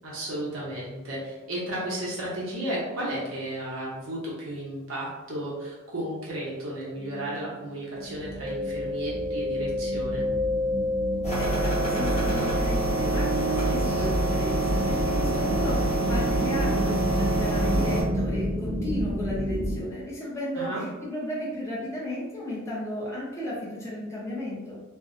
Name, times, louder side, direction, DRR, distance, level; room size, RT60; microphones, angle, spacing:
voice 1, 0.0-10.3 20.5-20.8, right 1 dB, 75° right, -6 dB, 0.9 m, -33 dB
sound 1, 7.0-19.8, right 1 dB, 35° right, 0.6 m, -30 dB
Mallet percussion, 8.4-18.0, left 2 dB, 65° left, 0.6 m, -33 dB
sound 2, 11.2-18.0, right 1 dB, 35° left, 0.9 m, -26 dB
voice 2, 11.4-24.8, left 1 dB, 15° left, -6 dB, 0.6 m, -34 dB
2.5 x 2.1 x 2.5 m, 1.1 s
head